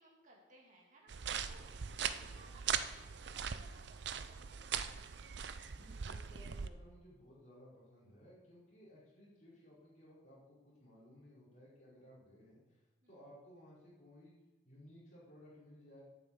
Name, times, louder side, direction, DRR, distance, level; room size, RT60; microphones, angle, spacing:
voice 1, 0.0-4.7 13.0-13.1, right 1 dB, 40° right, -3 dB, 2.5 m, -64 dB
sound 1, 1.1-6.7, right 7 dB, 60° right, 0.5 m, -40 dB
voice 2, 5.6-12.8 13.1-14.3 14.6-16.0, equal, 40° left, -8 dB, 4.8 m, -59 dB
9.4 x 8.4 x 7.0 m, 1.1 s
head